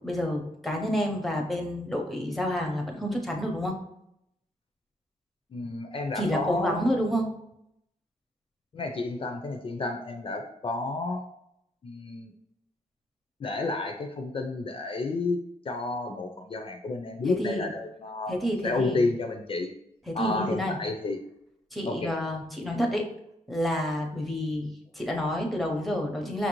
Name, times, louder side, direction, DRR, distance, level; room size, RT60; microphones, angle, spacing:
voice 1, 0.0-3.7 6.2-7.3 17.3-17.7 18.3-19.1 20.1-20.8 21.7-23.1 23.5-26.5, equal, ahead, 2 dB, 0.6 m, -29 dB
voice 2, 5.5-6.8 8.7-11.2 11.8-12.3 13.4-15.4 15.7-18.3 18.6-19.7 20.1-21.2 21.8-22.1, left 3 dB, 40° left, 4 dB, 0.3 m, -31 dB
5.7 x 2.5 x 2.9 m, 0.79 s
wide cardioid pair, 160°, 13 cm